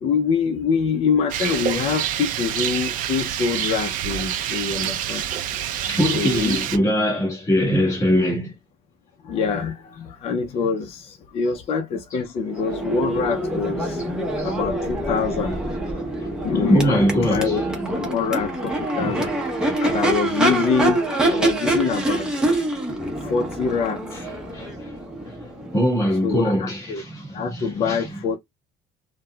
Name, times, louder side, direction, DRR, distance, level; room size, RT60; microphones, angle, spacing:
voice 1, 0.0-5.2 6.1-6.7 9.2-14.0 14.4-15.6 16.4-17.6 18.0-19.3 19.8-22.3 23.2-24.3 26.2-27.0 27.3-28.4, left 5 dB, 40° left, 0.5 m, -25 dB
Rain, 1.3-6.8, right 10 dB, 65° right, 0.5 m, -27 dB
voice 2, 5.8-8.5 12.1-12.2 14.0-14.1 14.4-14.6 16.5-17.7 19.0-19.4 24.1-24.2 24.5-28.4, equal, 20° left, 1.3 m, -23 dB
Crowd / Race car auto racing / Accelerating revving vroom, 12.5-26.3, right 1 dB, 5° right, 0.7 m, -25 dB
4.0 x 2.1 x 2.2 m
cardioid pair, 150°, 15 cm